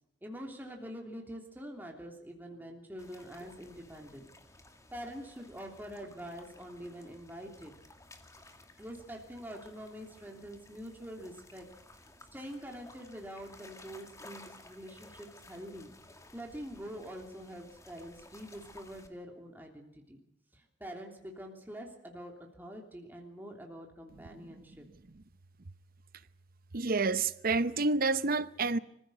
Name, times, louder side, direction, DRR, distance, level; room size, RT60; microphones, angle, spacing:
voice 1, 0.2-4.3 4.9-7.8 8.8-11.7 12.3-15.9 16.3-20.2 20.5-24.9, equal, 10° right, 3.2 m, -45 dB
sound 1, 3.0-19.1, left 2 dB, 20° left, 2.3 m, -56 dB
voice 2, 24.3-24.6 25.1-25.2 26.7-28.8, right 3 dB, 55° right, 0.9 m, -29 dB
25.0 x 15.5 x 8.0 m
head